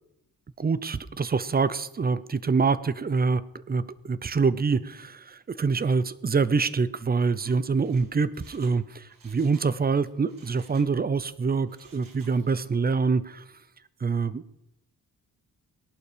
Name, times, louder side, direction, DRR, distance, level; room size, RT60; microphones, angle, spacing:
voice 1, 0.6-3.4 3.7-13.4 14.0-14.4, right 4 dB, 25° right, 17 dB, 0.6 m, -25 dB
Mechanisms, 7.4-9.7 10.0-11.3 11.6-12.7 13.0-13.1, right 4 dB, 65° right, 2.3 m, -56 dB
18.5 x 11.5 x 5.1 m, 0.85 s
wide cardioid pair, 120°, 37 cm